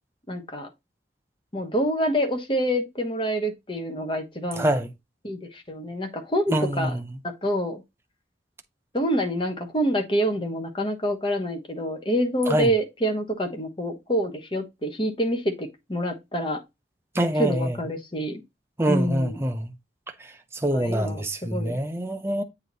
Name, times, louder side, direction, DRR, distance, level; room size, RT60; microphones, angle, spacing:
voice 1, 0.3-0.7 1.5-4.7 5.2-7.0 7.4-7.8 8.9-16.6 17.3-18.4 18.9-19.4 20.7-21.8, equal, 25° left, 1.2 m, -27 dB
voice 2, 4.6-4.9 6.5-7.0 12.5-12.7 17.1-17.8 18.8-19.7 20.6-22.4, right 1 dB, 15° right, 0.7 m, -25 dB
8.0 x 2.9 x 4.0 m
head